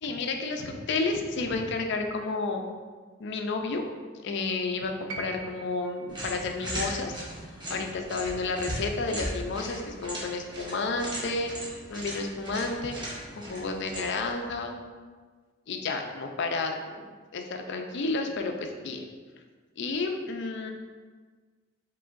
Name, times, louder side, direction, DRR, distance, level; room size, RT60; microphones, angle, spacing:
voice 1, 0.0-2.6 3.2-3.8 4.2-7.2 7.7-11.5 11.9-13.0 13.3-14.9 15.7-19.0 19.8-20.7, left 3 dB, 60° left, 4 dB, 0.5 m, -31 dB
sound 1, 5.1-9.3 10.5-10.6, right 4 dB, 90° right, 0.5 m, -45 dB
sound 2, 6.1-14.3, equal, 25° right, 1.0 m, -38 dB
4.7 x 3.7 x 2.5 m, 1.5 s
head